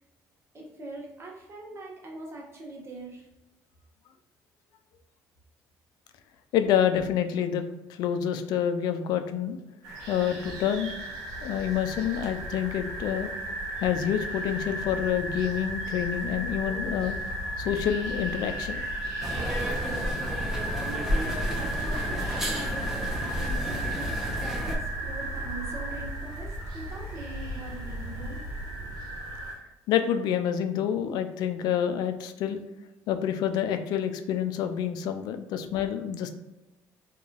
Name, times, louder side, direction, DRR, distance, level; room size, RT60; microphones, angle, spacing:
voice 1, 0.5-3.3 21.1-24.2 24.6-28.4, right 2 dB, 40° right, -2 dB, 1.2 m, -42 dB
voice 2, 6.5-9.6 10.1-10.9 11.4-13.3 13.8-17.2 17.6-18.8 29.9-32.6 33.1-36.3, left 9 dB, 75° left, 8 dB, 0.4 m, -27 dB
sound 1, 9.8-29.5, right 1 dB, 80° right, 1.0 m, -34 dB
sound 2, 19.2-24.8, equal, 5° right, 0.8 m, -31 dB
3.8 x 2.8 x 2.4 m, 1.0 s
supercardioid pair, 85°, 7 cm